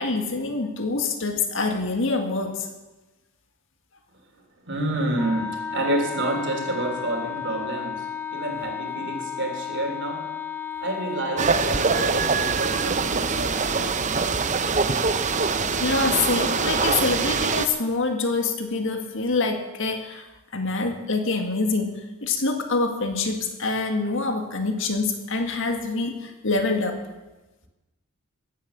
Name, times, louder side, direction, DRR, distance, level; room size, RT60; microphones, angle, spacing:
voice 1, 0.0-2.7 15.3-27.0, left 3 dB, 60° left, 5 dB, 1.9 m, -26 dB
voice 2, 4.7-8.0 8.3-10.3 10.8-13.9, right 1 dB, 55° right, 3 dB, 3.1 m, -29 dB
Wind instrument woodwind instrument, 5.1-11.5, left 7 dB, 10° left, 0.9 m, -33 dB
sound 1, 11.4-17.7, right 4 dB, 35° right, 0.8 m, -23 dB
15.5 x 11.0 x 7.0 m, 1.1 s
head